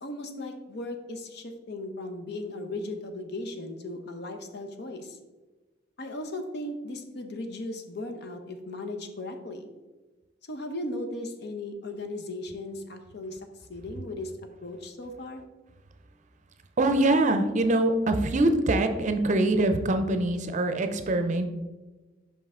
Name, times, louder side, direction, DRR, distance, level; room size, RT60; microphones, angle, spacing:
voice 1, 0.0-5.2 6.0-9.7 10.5-13.4 13.7-14.3 14.6-15.4, left 2 dB, 60° left, 6 dB, 0.7 m, -37 dB
voice 2, 16.8-21.5, right 2 dB, 40° right, 7 dB, 0.5 m, -24 dB
5.5 x 5.4 x 3.6 m, 1.2 s
head